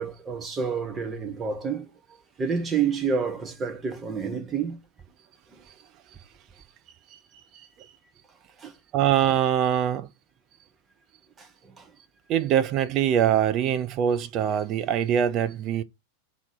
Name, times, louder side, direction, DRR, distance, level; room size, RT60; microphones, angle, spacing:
voice 1, 0.0-1.9 2.4-4.8 5.5-5.7 8.6-8.8 11.4-11.9, right 6 dB, 20° right, 1.4 m, -29 dB
voice 2, 8.9-10.1 12.3-15.8, right 9 dB, 35° right, 0.6 m, -23 dB
5.8 x 3.1 x 5.5 m
figure-of-eight pair, 90°, 0 cm